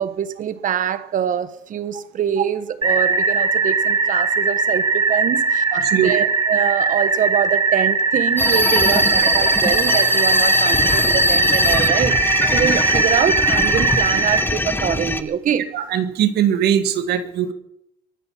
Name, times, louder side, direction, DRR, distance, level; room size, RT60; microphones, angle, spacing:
voice 1, 0.0-12.2 12.5-15.7, right 9 dB, 50° right, 1.3 m, -24 dB
sound 1, 2.8-14.4, right 4 dB, 25° right, 2.6 m, -20 dB
voice 2, 5.7-6.1 15.7-17.5, right 10 dB, 75° right, 1.8 m, -20 dB
sound 2, 8.4-15.2, left 1 dB, 10° left, 1.2 m, -20 dB
23.5 x 9.1 x 5.8 m
cardioid pair, 110°, 17 cm